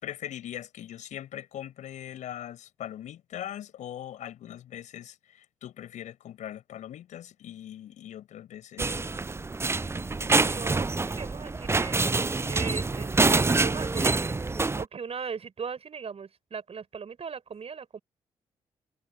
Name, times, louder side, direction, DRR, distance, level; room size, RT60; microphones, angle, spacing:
voice 1, 0.0-9.1, left 11 dB, 75° left, 6.4 m, -41 dB
sound 1, 8.8-14.8, right 3 dB, 20° right, 0.5 m, -26 dB
voice 2, 10.3-12.2 12.5-14.2 14.8-18.0, right 6 dB, 50° right, 6.9 m, -38 dB
hypercardioid pair, 45°, 13 cm